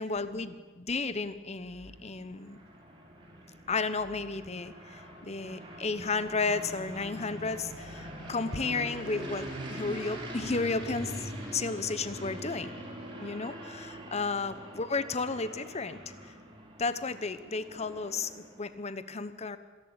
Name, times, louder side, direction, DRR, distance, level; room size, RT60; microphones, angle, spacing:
voice 1, 0.0-2.6 3.7-12.7 13.2-16.0 16.8-19.6, left 4 dB, 30° left, 13 dB, 0.9 m, -33 dB
sound 1, 1.5-18.7, right 1 dB, 20° right, 4.5 m, -43 dB
25.5 x 11.5 x 8.8 m, 1.3 s
head